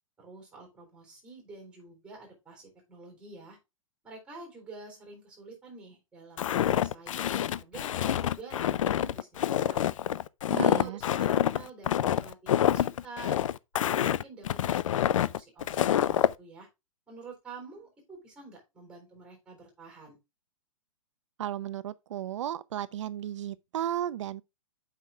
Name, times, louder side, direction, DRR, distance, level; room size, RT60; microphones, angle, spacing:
voice 1, 0.2-3.6 4.0-9.8 10.5-13.4 13.9-16.7 17.1-20.2, right 3 dB, 5° right, 3.7 m, -48 dB
Walk footsteps, 6.4-16.3, left 11 dB, 70° left, 0.5 m, -27 dB
voice 2, 10.5-11.0 21.4-24.4, right 11 dB, 60° right, 0.5 m, -34 dB
7.5 x 5.8 x 3.4 m
hypercardioid pair, 165°, 17 cm